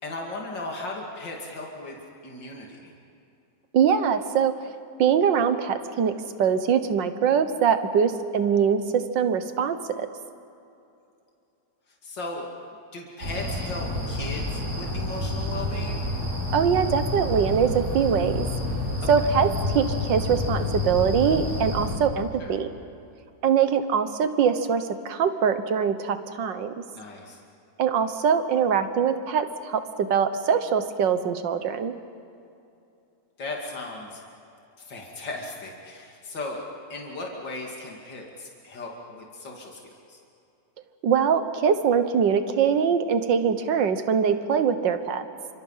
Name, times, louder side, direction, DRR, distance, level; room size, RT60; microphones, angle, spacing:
voice 1, 0.0-2.0 2.2-2.9 12.0-12.5 12.9-16.0 19.2-19.3 22.4-22.6 26.9-27.4 33.4-34.2 34.8-36.6 36.9-40.2, left 2 dB, 85° left, -1 dB, 3.2 m, -37 dB
voice 2, 3.7-4.5 5.0-6.1 6.4-10.1 16.5-18.5 19.1-19.5 19.8-22.7 23.4-26.7 27.8-31.9 41.0-45.2, right 7 dB, 90° right, 10 dB, 1.9 m, -23 dB
sound 1, 13.2-22.0, left 1 dB, 50° right, 5.6 m, -29 dB
29.5 x 25.5 x 5.7 m, 2.7 s
omnidirectional pair, 1.9 m